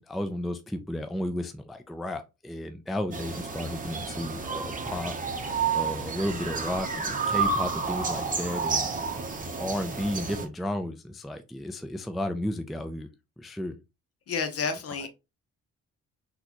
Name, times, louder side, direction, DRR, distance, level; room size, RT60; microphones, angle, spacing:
voice 1, 0.0-5.2 5.7-8.9 9.6-13.1 13.4-13.8, left 1 dB, ahead, 0.3 m, -33 dB
sound 1, 3.1-10.5, right 5 dB, 25° right, 0.7 m, -30 dB
voice 2, 14.3-15.1, left 5 dB, 50° left, 0.8 m, -30 dB
3.8 x 2.3 x 2.8 m
cardioid pair, 90°, 30 cm